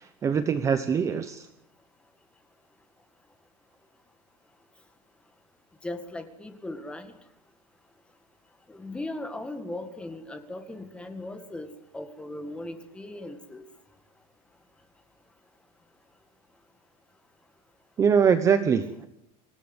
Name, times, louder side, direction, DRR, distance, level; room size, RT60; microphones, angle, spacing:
voice 1, 0.0-1.5 18.0-19.1, right 7 dB, 15° right, 10 dB, 0.9 m, -23 dB
voice 2, 5.8-7.1 8.7-11.7 11.9-13.6, left 1 dB, 5° left, 8 dB, 2.0 m, -38 dB
27.0 x 16.5 x 8.0 m, 0.80 s
supercardioid pair, 175°, 18 cm